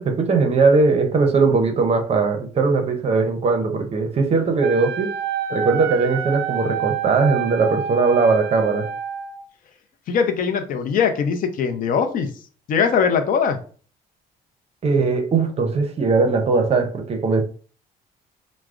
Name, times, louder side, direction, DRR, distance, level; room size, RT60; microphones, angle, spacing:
voice 1, 0.0-5.1 5.5-8.9 14.8-17.4, right 4 dB, 35° right, 0.6 m, -19 dB
Wind instrument woodwind instrument, 4.6-9.4, right 8 dB, 80° right, 0.4 m, -28 dB
voice 2, 10.1-12.3 12.7-13.6, left 6 dB, 55° left, 0.5 m, -21 dB
4.5 x 2.0 x 2.4 m
cardioid pair, 110°, 17 cm